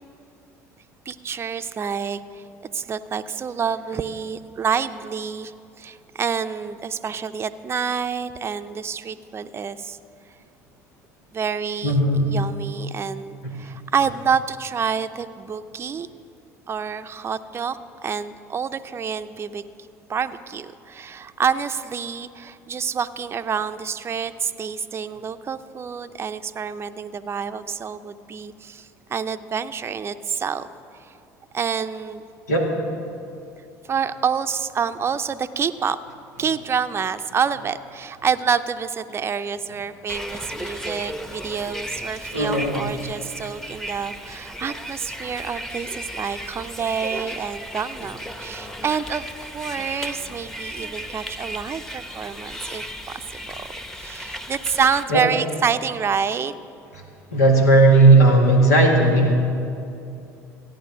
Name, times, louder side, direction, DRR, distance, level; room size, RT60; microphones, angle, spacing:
voice 1, 1.1-2.4 2.7-5.5 5.8-10.0 11.3-16.1 16.7-17.8 18.0-19.6 20.1-30.7 31.0-31.1 31.5-32.2 33.9-36.0 36.4-52.8 53.3-53.6 54.0-56.6, right 6 dB, 30° right, 10 dB, 0.5 m, -27 dB
voice 2, 11.8-12.2 13.4-13.5 32.5-32.7 40.7-40.8 42.3-42.9 55.1-55.2 56.9-57.0 57.3-59.3, right 2 dB, 90° left, 0 dB, 1.9 m, -16 dB
Bus, 40.1-55.0, equal, 5° left, 0.9 m, -35 dB
14.0 x 9.3 x 6.1 m, 2.5 s
hypercardioid pair, 70°, 9 cm